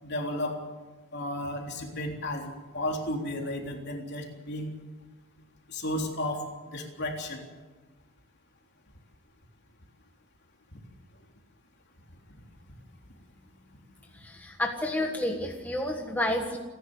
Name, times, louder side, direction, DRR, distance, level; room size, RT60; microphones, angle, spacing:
voice 1, 0.0-0.6 1.1-4.7 5.7-6.5 6.7-7.4, left 1 dB, 50° left, 1 dB, 3.5 m, -33 dB
voice 2, 14.1-16.6, left 1 dB, 10° left, 1 dB, 1.5 m, -30 dB
29.5 x 11.0 x 8.1 m, 1.2 s
head